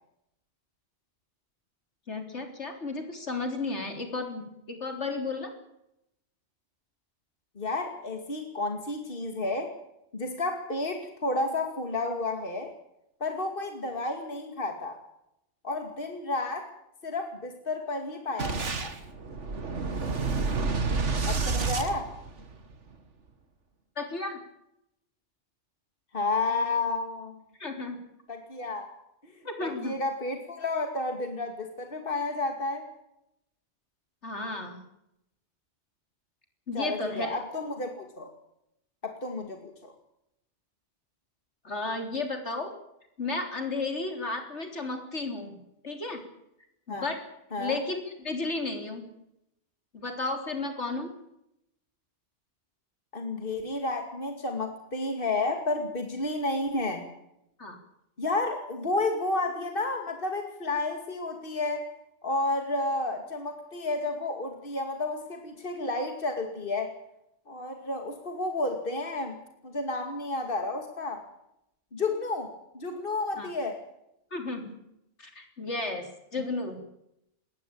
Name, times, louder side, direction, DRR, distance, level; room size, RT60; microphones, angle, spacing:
voice 1, 2.1-5.5 24.0-24.4 27.6-28.0 29.4-30.0 34.2-34.8 36.7-37.4 41.6-42.7 43.2-45.6 45.8-46.2 46.9-47.2 47.6-49.0 49.9-51.1 57.6-57.8 73.4-73.5 74.3-74.7 75.2-76.0 76.3-76.8, left 3 dB, 75° left, 5 dB, 4.0 m, -33 dB
voice 2, 7.6-9.7 10.1-12.7 13.2-15.0 15.6-16.7 17.0-19.0 21.2-22.1 26.1-27.4 28.3-28.9 29.2-29.3 29.6-32.9 36.7-38.3 39.0-39.9 46.9-47.1 47.5-47.8 53.1-57.1 58.2-61.9 62.2-66.9 67.5-69.4 69.6-71.2 71.9-73.8, left 2 dB, 50° left, 4 dB, 2.6 m, -31 dB
Boom, 18.4-22.8, right 4 dB, 85° right, 2.2 m, -29 dB
21.0 x 17.5 x 8.7 m, 0.81 s
omnidirectional pair, 1.2 m